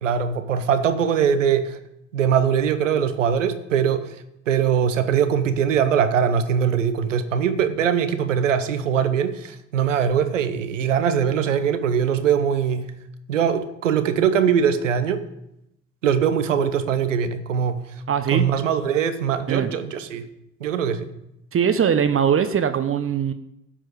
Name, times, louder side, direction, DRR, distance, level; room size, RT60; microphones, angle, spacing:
voice 1, 0.0-1.8 2.1-4.0 4.5-12.9 13.3-15.2 16.0-17.8 18.3-20.2 20.6-21.1, right 7 dB, 85° right, 10 dB, 0.8 m, -21 dB
voice 2, 18.1-18.5 19.5-19.7 21.5-23.3, right 8 dB, 35° right, 10 dB, 0.8 m, -21 dB
12.0 x 7.5 x 5.0 m, 0.82 s
hypercardioid pair, 55°, 37 cm